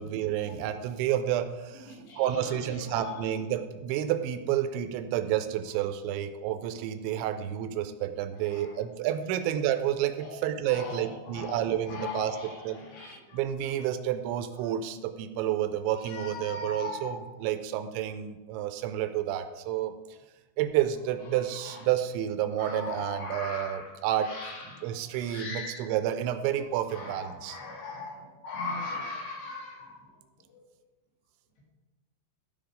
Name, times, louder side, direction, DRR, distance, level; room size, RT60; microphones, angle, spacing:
voice 1, 0.0-12.8 13.3-19.9 20.6-24.5 24.8-27.6, right 11 dB, 85° right, 10 dB, 2.8 m, -30 dB
voice 2, 1.9-2.2 2.9-3.2 10.2-10.4 10.7-12.6 12.9-13.2 16.1-17.2 22.6-23.9 24.2-24.9 25.2-25.9 26.9-30.0, left 3 dB, 70° left, -4 dB, 4.7 m, -38 dB
14.5 x 5.3 x 5.0 m, 1.2 s
omnidirectional pair, 5.4 m